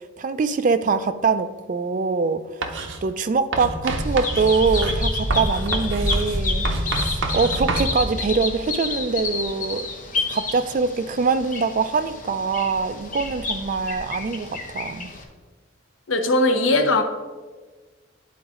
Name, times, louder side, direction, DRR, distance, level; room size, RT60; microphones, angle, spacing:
voice 1, 0.2-2.4 3.0-6.7 6.9-9.9 10.3-14.5 14.7-15.1, right 4 dB, 40° right, 12 dB, 0.3 m, -23 dB
Writing, 2.6-3.0 3.5-7.9, right 3 dB, 70° right, 0.7 m, -28 dB
Bird vocalization bird call bird song, 3.8-15.2, left 2 dB, 40° left, 0.7 m, -28 dB
voice 2, 16.1-17.0, left 2 dB, 85° left, 6 dB, 0.7 m, -19 dB
10.5 x 3.9 x 3.7 m, 1.3 s
head